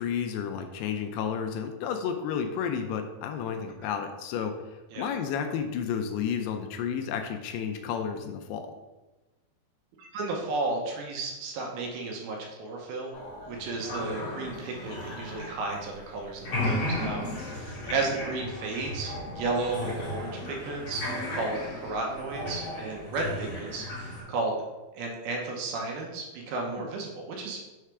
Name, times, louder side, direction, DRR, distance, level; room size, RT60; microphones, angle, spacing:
voice 1, 0.0-4.5 5.0-8.7 26.8-26.9, left 7 dB, 85° left, 6 dB, 2.5 m, -31 dB
voice 2, 10.0-13.1 13.5-21.0 21.3-24.6 24.9-27.6, right 3 dB, 80° right, 0 dB, 2.6 m, -33 dB
sound 1, 13.1-16.1 16.3-24.2, left 1 dB, 50° left, 2.9 m, -35 dB
6.7 x 4.7 x 3.2 m, 1.1 s
omnidirectional pair, 4.7 m